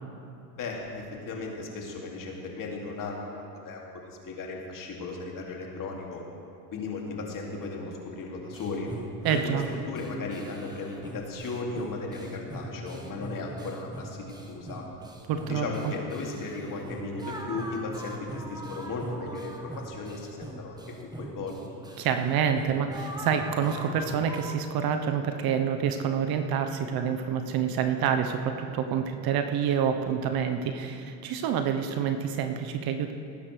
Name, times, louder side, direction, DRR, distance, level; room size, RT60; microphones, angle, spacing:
voice 1, 0.6-6.2 6.7-8.9 9.4-14.8 15.5-20.8 21.2-21.5, left 3 dB, 40° left, -1 dB, 2.5 m, -36 dB
sound 1, 8.5-24.5, right 1 dB, 10° right, 1.2 m, -41 dB
voice 2, 9.2-9.7 15.3-15.9 22.0-33.1, right 7 dB, 45° right, 7 dB, 0.9 m, -27 dB
19.0 x 9.9 x 3.3 m, 2.6 s
hypercardioid pair, 85°, 50 cm